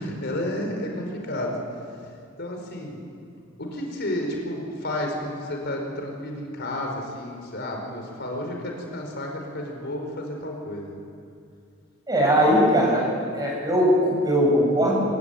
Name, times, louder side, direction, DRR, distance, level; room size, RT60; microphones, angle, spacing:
voice 1, 0.0-1.6 2.4-3.0 3.6-11.0, left 1 dB, 55° left, 1 dB, 5.0 m, -31 dB
voice 2, 12.1-13.1 13.3-15.0, equal, 20° right, -2 dB, 7.9 m, -20 dB
25.0 x 22.5 x 9.5 m, 2.4 s
head